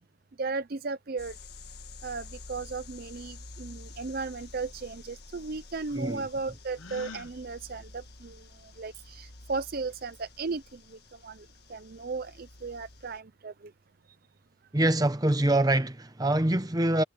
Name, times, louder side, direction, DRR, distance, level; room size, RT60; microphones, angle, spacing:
voice 1, 0.4-1.4 2.0-8.4 8.8-13.5, right 4 dB, 45° right, 0.6 m, -36 dB
sound 1, 1.2-13.2, left 3 dB, 50° left, 1.9 m, -49 dB
Gasp, 6.8-7.3, left 4 dB, 75° left, 1.2 m, -43 dB
voice 2, 14.7-17.0, right 1 dB, 20° right, 0.9 m, -24 dB
head